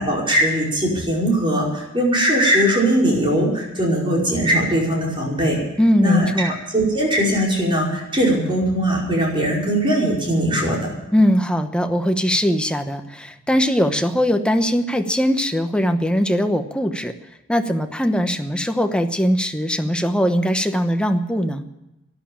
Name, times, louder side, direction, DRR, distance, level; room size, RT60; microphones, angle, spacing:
voice 1, 0.0-5.6 6.0-10.9, equal, 25° right, -3 dB, 5.2 m, -20 dB
voice 2, 5.8-6.5 11.1-17.1 17.5-21.6, equal, 5° left, 6 dB, 1.0 m, -20 dB
13.0 x 11.0 x 8.7 m, 0.96 s
head